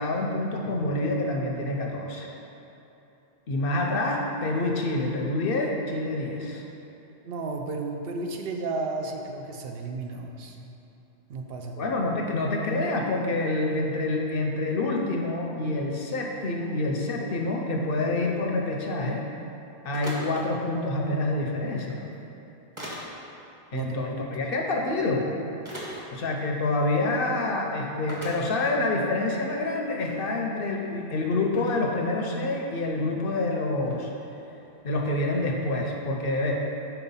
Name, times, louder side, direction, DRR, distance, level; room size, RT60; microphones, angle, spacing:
voice 1, 0.0-2.3 3.5-6.6 11.8-19.3 19.8-22.0 23.7-25.3 26.1-34.1 34.8-36.7, left 2 dB, 55° left, 1 dB, 0.7 m, -27 dB
voice 2, 7.2-10.6 11.3-11.8 23.7-24.3, right 3 dB, 60° right, 2 dB, 0.8 m, -33 dB
sound 1, 19.9-20.5 21.8-21.9 22.8-23.1 24.8-24.9 25.6-26.0 26.9-27.0 27.3-27.4 28.1-28.4 29.1-29.2 29.6-30.2 30.8-30.9 31.5-31.8 33.8-34.0, equal, 25° right, 1.1 m, -39 dB
5.7 x 4.4 x 5.5 m, 2.9 s
omnidirectional pair, 1.2 m